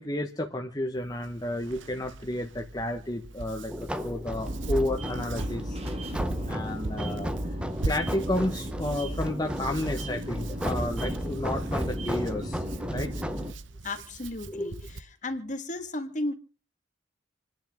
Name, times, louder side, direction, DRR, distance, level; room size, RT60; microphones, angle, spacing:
voice 1, 0.0-3.7 4.0-5.8 6.5-7.3 7.8-12.6 12.9-13.1 14.5-14.7, left 1 dB, 20° left, 1.2 m, -31 dB
Hands, 1.0-15.0, right 2 dB, 75° right, 0.9 m, -40 dB
sound 1, 3.7-13.5, equal, 5° right, 0.9 m, -35 dB
sound 2, 4.5-13.5, equal, 30° right, 1.9 m, -37 dB
voice 2, 13.8-16.3, left 2 dB, 40° left, 1.8 m, -34 dB
27.5 x 10.5 x 3.7 m
head